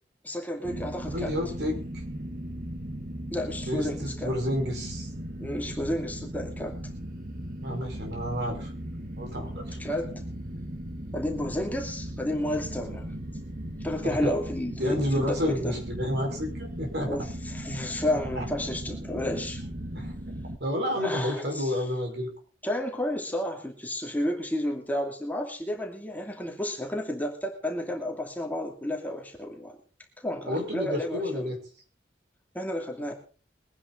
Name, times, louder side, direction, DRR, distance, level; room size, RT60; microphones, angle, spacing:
voice 1, 0.2-1.3 3.3-4.3 5.4-6.8 9.8-10.2 11.1-13.1 13.8-15.8 17.1-19.6 21.0-21.7 22.6-29.8 30.2-31.5 32.5-33.1, left 1 dB, 10° left, 1 dB, 2.5 m, -31 dB
sound 1, 0.6-20.6, right 1 dB, 50° right, 1.8 m, -37 dB
voice 2, 1.1-2.0 3.7-5.1 7.6-8.7 9.2-9.8 14.2-14.3 14.8-17.1 18.3-18.4 19.9-20.1 20.6-22.3 30.5-31.6, left 1 dB, 70° right, 2 dB, 4.9 m, -30 dB
22.5 x 10.0 x 3.9 m, 0.39 s
head